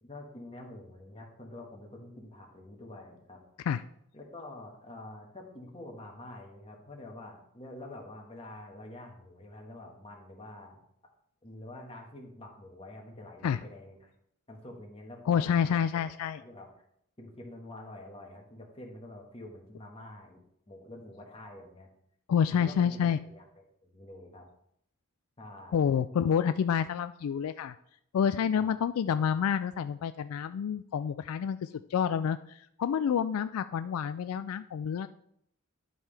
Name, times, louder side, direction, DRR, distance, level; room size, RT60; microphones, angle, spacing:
voice 1, 0.0-3.4 4.1-10.8 11.4-14.1 14.5-16.0 16.4-16.7 17.2-20.4 20.7-21.9 22.5-24.5 25.4-25.9 28.5-28.7, left 1 dB, 25° left, 0 dB, 1.6 m, -47 dB
voice 2, 15.3-16.4 22.3-23.2 25.7-27.8 28.1-35.1, left 7 dB, 80° left, 12 dB, 0.3 m, -28 dB
11.0 x 5.5 x 3.4 m, 0.70 s
head